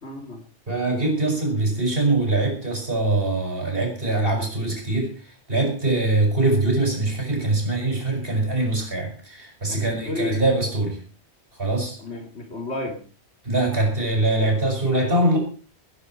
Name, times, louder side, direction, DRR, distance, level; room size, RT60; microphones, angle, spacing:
voice 1, 0.0-0.4 9.7-10.4 12.0-13.0, left 2 dB, 80° left, 2 dB, 3.3 m, -31 dB
voice 2, 0.7-5.1 5.5-11.0 11.6-12.0 13.4-15.4, right 2 dB, 60° right, 1 dB, 6.4 m, -23 dB
21.0 x 10.0 x 4.5 m, 0.39 s
omnidirectional pair, 1.1 m